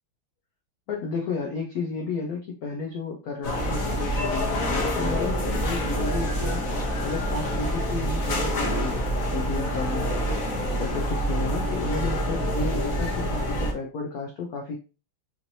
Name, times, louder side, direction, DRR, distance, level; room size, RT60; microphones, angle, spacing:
voice 1, 0.9-14.8, left 4 dB, 75° left, 1 dB, 0.8 m, -33 dB
sound 1, 3.4-13.7, equal, 50° left, 1.1 m, -27 dB
4.4 x 3.0 x 2.6 m, 0.33 s
omnidirectional pair, 2.3 m